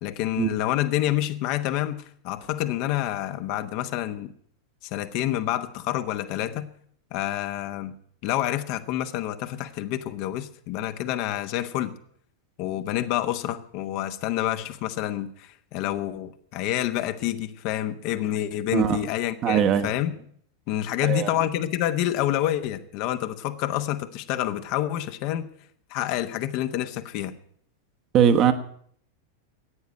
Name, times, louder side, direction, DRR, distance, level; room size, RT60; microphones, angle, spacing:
voice 1, 0.0-4.3 4.9-6.7 7.1-7.9 8.2-11.9 12.6-20.2 20.7-25.5 25.9-27.3, left 13 dB, 45° left, 9 dB, 1.1 m, -28 dB
voice 2, 19.4-19.9 21.0-21.3 28.1-28.5, right 9 dB, 35° right, 8 dB, 1.3 m, -20 dB
14.5 x 9.4 x 9.1 m, 0.62 s
figure-of-eight pair, 90°, 0 cm